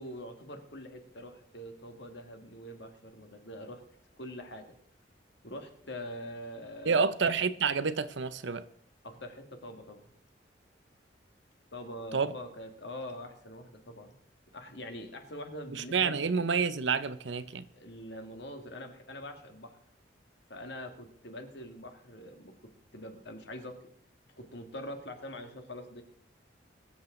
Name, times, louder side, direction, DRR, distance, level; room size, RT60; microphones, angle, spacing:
voice 1, 0.0-3.8 4.2-4.8 5.4-7.0 9.0-10.1 11.7-14.2 14.5-16.2 17.7-19.8 20.5-22.5 22.9-23.8 24.4-26.0, left 1 dB, 65° left, 1.9 m, -44 dB
voice 2, 6.9-8.6 12.1-12.3 15.7-17.7, right 5 dB, 80° right, 0.7 m, -29 dB
22.0 x 7.5 x 3.8 m
head